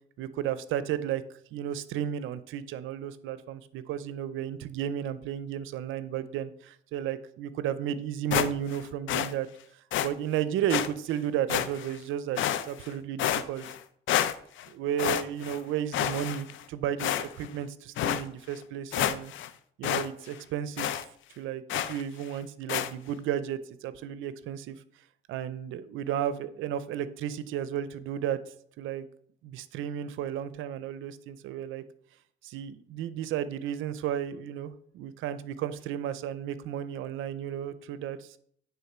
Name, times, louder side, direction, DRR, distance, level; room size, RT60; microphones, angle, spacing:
voice 1, 0.2-1.2 1.5-9.5 10.0-13.7 14.7-19.3 19.8-21.0 21.4-24.8 25.3-28.4 28.8-29.1 29.4-31.8 32.4-38.4, right 10 dB, 85° right, 14 dB, 0.5 m, -33 dB
sound 1, 8.3-8.8 9.1-9.3 9.9-10.1 10.7-10.9 11.5-12.0 12.4-12.9 13.2-13.8 14.1-14.7 15.0-15.6 15.9-16.6 17.0-17.5 18.0-18.2 18.6-18.7 18.9-19.5 19.8-20.1 20.3-20.4 20.8-21.0 21.7-22.0 22.7-22.9, left 11 dB, 75° left, 0.5 m, -29 dB
9.6 x 3.7 x 4.3 m, 0.63 s
cardioid pair, 90°, 20 cm